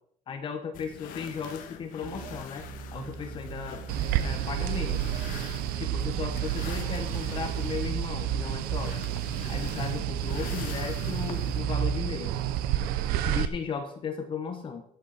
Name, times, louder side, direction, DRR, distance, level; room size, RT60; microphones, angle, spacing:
voice 1, 0.3-2.7 2.9-3.8 4.2-5.0 5.8-9.0 9.5-12.3 13.2-14.8, left 6 dB, 35° left, 5 dB, 1.3 m, -36 dB
sound 1, 0.7-11.6, left 10 dB, 65° left, 1.5 m, -44 dB
sound 2, 2.0-7.8, right 6 dB, 60° right, 1.4 m, -42 dB
sound 3, 3.9-13.5, right 11 dB, 80° right, 0.8 m, -30 dB
12.0 x 9.4 x 4.4 m, 0.64 s
cardioid pair, 155°, 15 cm